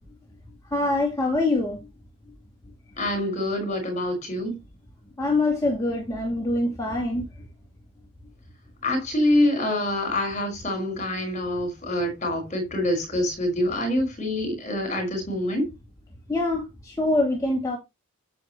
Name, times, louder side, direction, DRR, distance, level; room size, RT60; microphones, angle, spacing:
voice 1, 0.7-1.8 5.2-7.3 16.3-17.8, left 2 dB, 15° left, 2.6 m, -24 dB
voice 2, 3.0-4.6 8.8-15.6, left 1 dB, 35° left, 5.5 m, -25 dB
10.5 x 7.8 x 3.1 m
head